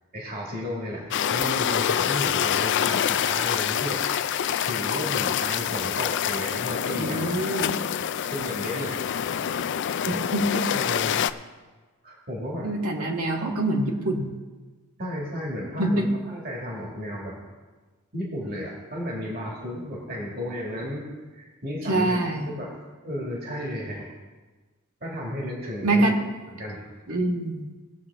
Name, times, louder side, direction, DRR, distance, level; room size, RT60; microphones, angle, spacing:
voice 1, 0.1-4.0 4.6-7.3 8.2-9.1 10.1-10.2 10.7-11.3 12.0-12.7 13.0-13.5 15.0-17.4 18.1-21.1 21.3-22.8 23.0-24.1 25.0-26.1 26.5-26.9, equal, 45° right, -2 dB, 2.2 m, -33 dB
sound 1, 1.1-11.3, left 9 dB, 55° left, 0.3 m, -26 dB
voice 2, 7.0-7.9 10.3-10.6 12.6-14.4 15.8-16.1 21.9-22.5 25.8-26.2 27.1-27.7, right 1 dB, 75° right, 1 dB, 1.7 m, -25 dB
19.0 x 7.3 x 3.6 m, 1.3 s
head